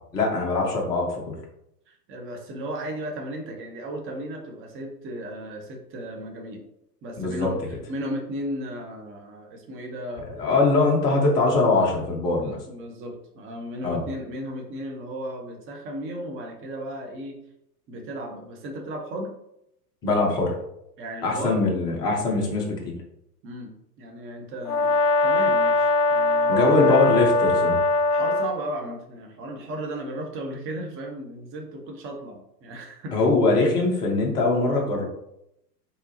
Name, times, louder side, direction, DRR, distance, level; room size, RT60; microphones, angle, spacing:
voice 1, 0.1-1.3 7.2-7.5 10.4-12.6 13.8-14.0 20.0-20.5 21.2-22.9 26.5-27.8 33.1-35.0, left 3 dB, 10° left, -1 dB, 0.3 m, -22 dB
voice 2, 1.9-6.6 7.0-7.6 7.9-10.3 12.3-17.4 17.9-19.3 21.0-21.6 23.4-24.9 25.2-27.0 28.1-33.2, right 1 dB, 25° right, 1 dB, 1.0 m, -35 dB
Brass instrument, 24.7-28.5, left 3 dB, 70° left, 0.7 m, -21 dB
4.5 x 3.5 x 2.8 m, 0.78 s
figure-of-eight pair, 100°, 49 cm